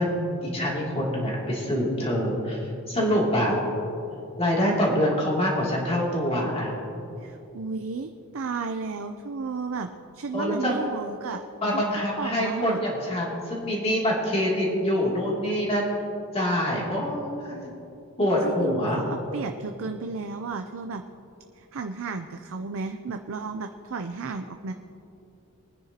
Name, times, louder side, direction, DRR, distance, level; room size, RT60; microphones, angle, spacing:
voice 1, 0.0-3.6 4.4-6.7 10.3-10.7 11.6-15.9 16.3-17.7 18.2-19.0, equal, 30° left, -4 dB, 2.7 m, -25 dB
voice 2, 7.2-9.9 10.1-11.4 11.7-12.8 18.4-21.0 21.6-24.7, right 4 dB, 60° right, 6 dB, 0.5 m, -33 dB
22.0 x 9.8 x 2.9 m, 2.8 s
head